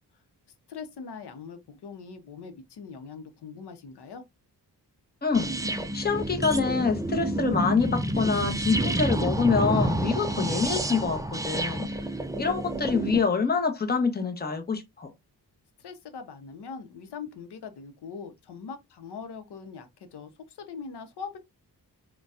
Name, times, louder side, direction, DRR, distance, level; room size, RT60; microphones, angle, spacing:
voice 1, 0.7-4.2 15.8-21.4, left 5 dB, 75° left, 0.8 m, -41 dB
voice 2, 5.2-11.9 12.4-15.1, left 5 dB, 25° left, 0.8 m, -26 dB
sound 1, 5.3-13.2, right 1 dB, 10° right, 0.4 m, -29 dB
3.9 x 2.3 x 2.4 m
cardioid pair, 60°, 41 cm